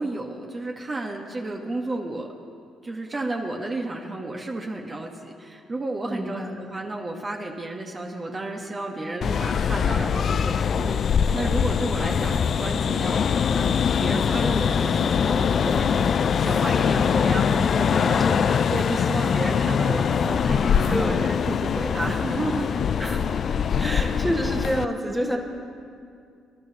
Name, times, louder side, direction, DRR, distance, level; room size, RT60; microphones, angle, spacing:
voice 1, 0.0-2.3 2.8-13.7 14.0-22.8 24.1-24.2, right 2 dB, 30° right, 1 dB, 1.2 m, -32 dB
voice 2, 6.0-6.6 18.2-18.7 20.9-21.3 23.0-23.4 23.7-25.4, equal, 10° right, 2 dB, 1.4 m, -29 dB
sound 1, 9.2-24.8, left 7 dB, 55° left, 0.3 m, -23 dB
22.5 x 11.5 x 2.9 m, 2.3 s
supercardioid pair, 70°, 0 cm